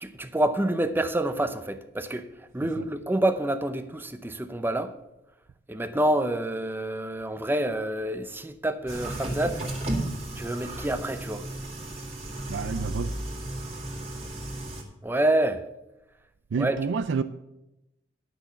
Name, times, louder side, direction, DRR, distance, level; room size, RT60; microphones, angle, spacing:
voice 1, 0.0-4.9 5.7-9.6 10.4-11.4 15.0-15.6 16.6-16.8, right 1 dB, 10° right, 0.6 m, -27 dB
sound 1, 8.9-14.8, right 1 dB, 35° right, 2.0 m, -34 dB
voice 2, 12.5-13.1 16.5-17.2, right 5 dB, 85° right, 0.4 m, -28 dB
10.5 x 6.1 x 6.8 m
head